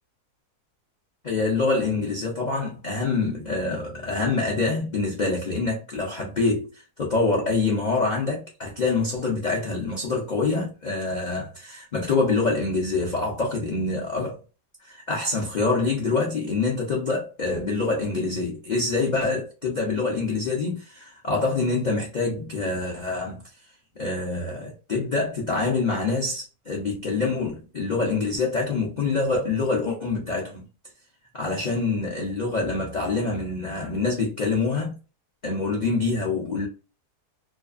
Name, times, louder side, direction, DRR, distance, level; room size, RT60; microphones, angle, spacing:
voice 1, 1.2-14.4 14.8-23.4 24.0-30.6 31.3-35.0 35.4-36.7, left 3 dB, 75° left, 0.4 m, -26 dB
2.7 x 2.4 x 2.3 m
omnidirectional pair, 1.6 m